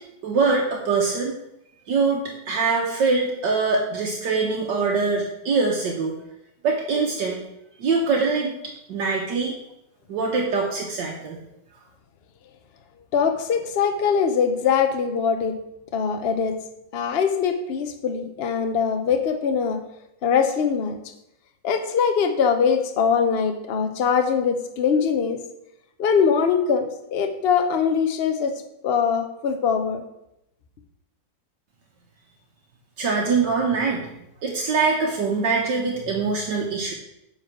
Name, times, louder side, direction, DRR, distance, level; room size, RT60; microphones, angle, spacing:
voice 1, 0.2-1.3 1.9-6.1 6.6-7.4 7.8-8.5 8.9-9.5 10.1-11.4 33.0-34.1 34.4-36.9, right 4 dB, 70° right, -1 dB, 1.7 m, -23 dB
voice 2, 13.1-15.5 15.9-16.6 16.9-19.8 20.2-21.0 21.6-25.4 26.0-28.5 28.8-30.0, left 6 dB, 45° left, 6 dB, 0.8 m, -22 dB
9.8 x 4.6 x 6.0 m, 0.83 s
omnidirectional pair, 2.0 m